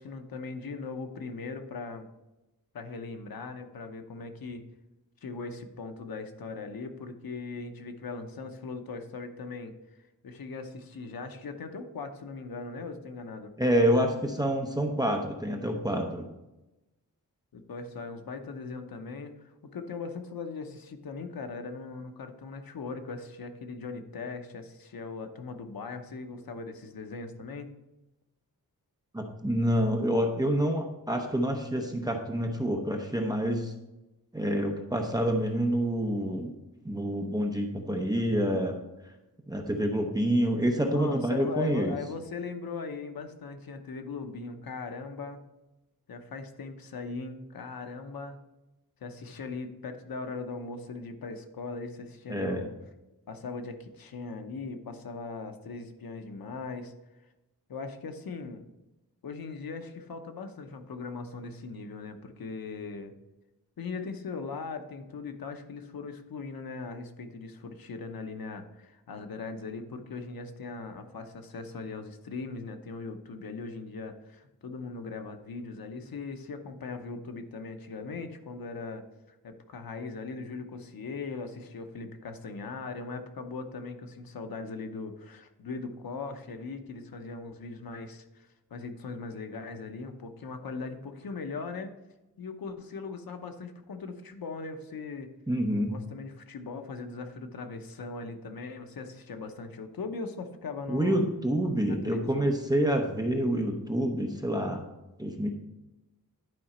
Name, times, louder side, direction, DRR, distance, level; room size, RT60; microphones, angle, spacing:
voice 1, 0.0-2.1 2.7-4.7 5.2-9.7 10.2-13.5 17.5-27.7 40.8-45.4 46.1-48.4 49.0-52.7 53.3-56.9 57.7-58.7 59.2-63.1 63.8-91.9 92.4-95.3 95.9-101.2 101.9-102.6, left 4 dB, 75° left, 7 dB, 0.9 m, -39 dB
voice 2, 13.6-16.3 29.1-33.7 34.3-36.5 36.8-38.8 39.5-41.9 52.3-52.6 95.5-96.0 100.9-104.8 105.2-105.5, equal, 10° right, 2 dB, 0.8 m, -27 dB
11.0 x 4.9 x 4.3 m, 0.99 s
wide cardioid pair, 160°, 36 cm